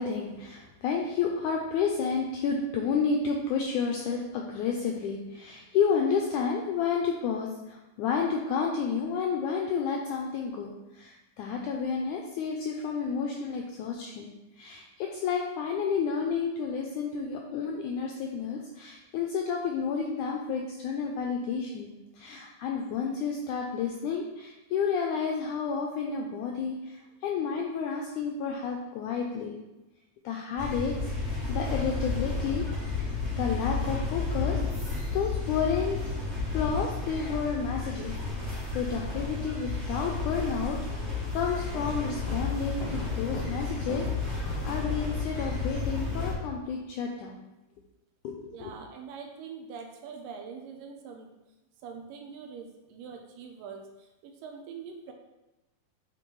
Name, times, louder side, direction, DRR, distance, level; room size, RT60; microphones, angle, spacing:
voice 1, 0.0-29.6 30.2-32.6 33.0-34.6 35.1-36.0 36.5-38.1 38.4-47.4 48.2-48.7, left 6 dB, 90° left, 1 dB, 1.7 m, -31 dB
sound 1, 30.6-46.3, left 4 dB, 15° right, 1.5 m, -32 dB
sound 2, 41.7-45.4, left 1 dB, 70° left, 1.5 m, -42 dB
voice 2, 48.5-51.3 51.8-55.1, right 6 dB, 80° right, 3 dB, 2.2 m, -43 dB
8.8 x 4.2 x 3.1 m, 1.0 s
omnidirectional pair, 4.1 m